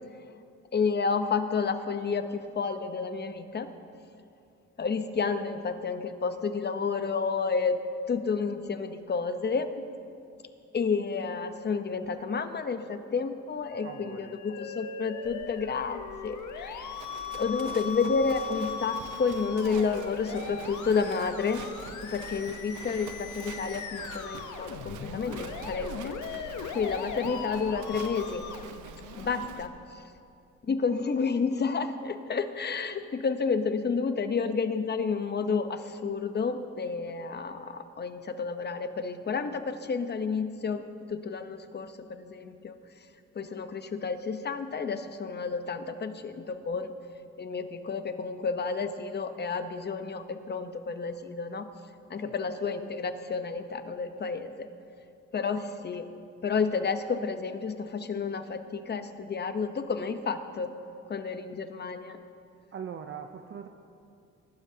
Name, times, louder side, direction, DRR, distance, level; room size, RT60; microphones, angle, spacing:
voice 1, 0.7-3.7 4.8-9.8 10.7-17.0 17.3-21.6 22.0-26.5 26.7-28.5 29.1-30.0 30.6-42.7 43.3-46.9 47.4-51.7 52.1-54.7 55.3-56.1 56.4-60.8 61.1-62.2, left 5 dB, 35° left, 9 dB, 0.9 m, -30 dB
Musical instrument, 13.6-29.6, left 7 dB, 75° left, 0.9 m, -39 dB
voice 2, 13.8-14.3 52.2-52.3 62.7-63.7, right 7 dB, 45° right, 6 dB, 0.6 m, -41 dB
Livestock farm animals working animals, 15.2-29.7, right 7 dB, 80° right, 0.9 m, -45 dB
20.5 x 11.5 x 2.8 m, 2.5 s
cardioid pair, 90°, 30 cm